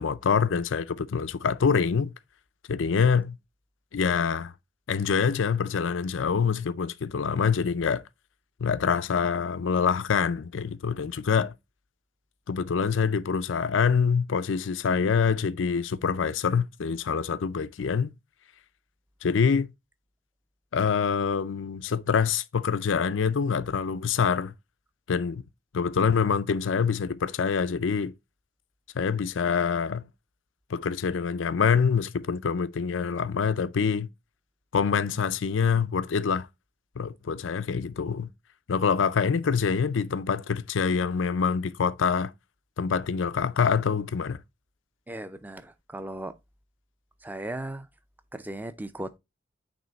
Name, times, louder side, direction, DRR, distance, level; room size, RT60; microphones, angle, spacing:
voice 1, 0.0-2.1 2.7-3.4 3.9-4.5 4.9-8.0 8.6-11.5 12.5-18.1 19.2-19.7 20.7-24.5 25.1-25.4 25.7-28.1 28.9-30.1 30.7-34.1 34.7-36.5 37.0-38.3 38.7-42.3 42.8-44.4, left 6 dB, 85° left, 0.5 m, -25 dB
voice 2, 45.1-46.4 47.2-47.9 48.3-49.2, right 1 dB, 10° right, 0.5 m, -37 dB
9.0 x 3.2 x 4.0 m
head